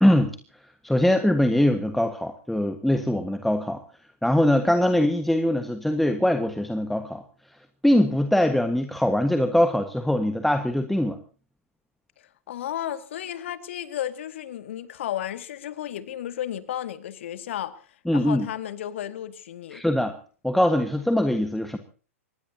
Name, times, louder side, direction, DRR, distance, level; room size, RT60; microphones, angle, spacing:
voice 1, 0.0-0.4 0.8-3.8 4.2-7.2 7.8-11.2 18.1-18.5 19.7-20.2 20.4-21.8, left 1 dB, ahead, 1.5 m, -22 dB
voice 2, 12.5-17.8 18.1-19.8, left 11 dB, 55° left, 2.1 m, -33 dB
24.5 x 20.5 x 2.8 m
figure-of-eight pair, 105°, 8 cm